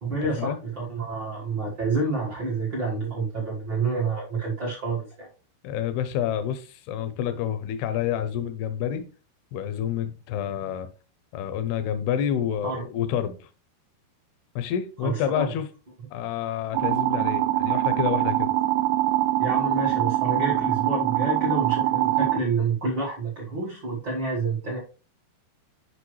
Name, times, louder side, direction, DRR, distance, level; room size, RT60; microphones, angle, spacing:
voice 1, 0.0-5.3 12.6-12.8 15.0-15.5 19.4-24.8, right 3 dB, 55° right, 1.2 m, -28 dB
voice 2, 5.6-9.0 9.5-10.9 11.3-13.5 14.6-15.7 16.1-18.5, left 9 dB, 80° left, 2.6 m, -28 dB
sound 1, 16.7-22.4, right 15 dB, 90° right, 2.7 m, -23 dB
8.4 x 5.2 x 3.1 m
omnidirectional pair, 4.7 m